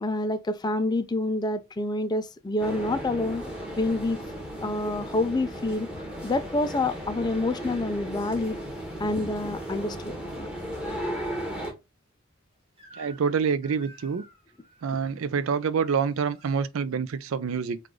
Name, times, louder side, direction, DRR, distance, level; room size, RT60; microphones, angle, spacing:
voice 1, 0.0-3.4 3.8-4.2 4.6-8.6 9.0-10.5, left 2 dB, 20° left, 0.4 m, -28 dB
sound 1, 2.6-11.7, equal, 5° right, 1.1 m, -35 dB
Crying sobbing / Screech, 12.8-13.3 13.6-15.1 15.9-16.6, right 1 dB, 30° right, 1.5 m, -52 dB
voice 2, 13.0-14.2 14.8-17.8, right 6 dB, 75° right, 0.4 m, -27 dB
4.8 x 2.4 x 3.7 m
head